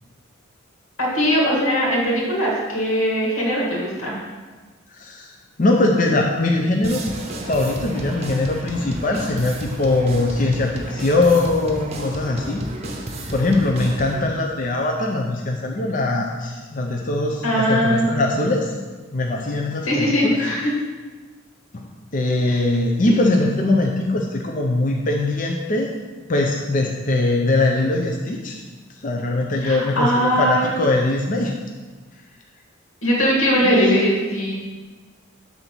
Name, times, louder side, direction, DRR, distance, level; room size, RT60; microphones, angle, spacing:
voice 1, 1.0-4.2 17.4-18.1 19.8-20.7 22.5-22.6 29.6-30.7 33.0-34.5, equal, 90° left, -3 dB, 2.2 m, -20 dB
voice 2, 4.9-7.0 7.4-12.6 13.3-18.7 19.1-20.4 21.7-21.8 22.1-25.9 26.3-28.6 29.0-31.5 33.6-34.0, left 2 dB, 40° left, 1 dB, 0.5 m, -21 dB
sound 1, 6.8-14.2, right 1 dB, 30° right, 0.7 m, -32 dB
7.2 x 4.0 x 6.1 m, 1.4 s
head